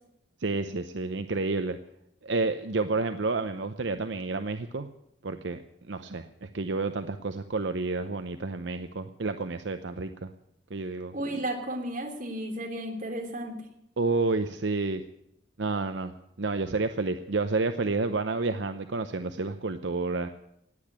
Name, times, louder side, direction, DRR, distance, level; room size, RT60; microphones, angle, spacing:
voice 1, 0.4-1.8 2.2-4.9 5.2-5.6 5.9-10.3 10.7-11.1 14.0-15.0 15.6-20.3, right 3 dB, 70° right, 9 dB, 0.7 m, -30 dB
voice 2, 11.1-13.6, right 1 dB, 45° right, 2 dB, 3.2 m, -33 dB
18.5 x 8.8 x 8.9 m, 0.78 s
head